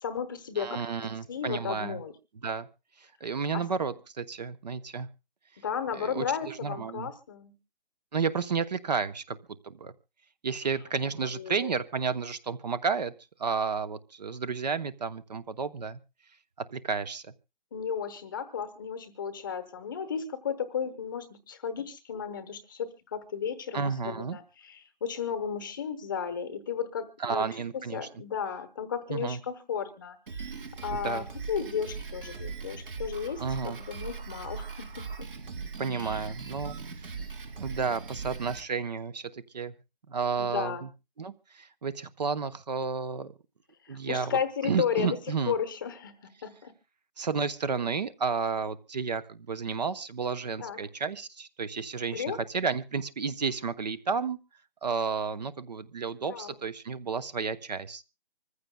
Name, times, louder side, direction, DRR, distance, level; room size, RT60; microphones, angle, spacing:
voice 1, 0.0-2.1 3.5-3.7 5.6-7.5 11.2-11.7 17.7-27.5 27.7-35.3 35.9-36.2 40.4-40.9 43.8-45.2 45.5-46.2 46.4-46.7 50.6-50.8 52.1-52.6 56.3-56.6, left 7 dB, 20° left, 10 dB, 0.9 m, -34 dB
voice 2, 0.6-2.0 2.4-2.7 3.0-5.1 5.9-7.1 8.1-9.4 9.6-9.9 10.4-13.1 13.4-16.0 16.6-17.2 23.7-24.4 27.2-28.1 29.1-29.4 30.9-31.3 33.4-33.8 35.8-37.2 37.6-39.7 40.1-40.9 41.2-43.3 43.9-44.4 44.6-45.5 47.2-54.4 54.8-58.0, right 5 dB, 40° right, 14 dB, 0.8 m, -32 dB
Drum kit, 30.3-38.6, right 5 dB, 60° right, 2.5 m, -39 dB
25.5 x 14.5 x 2.2 m, 0.29 s
hypercardioid pair, 170°, 31 cm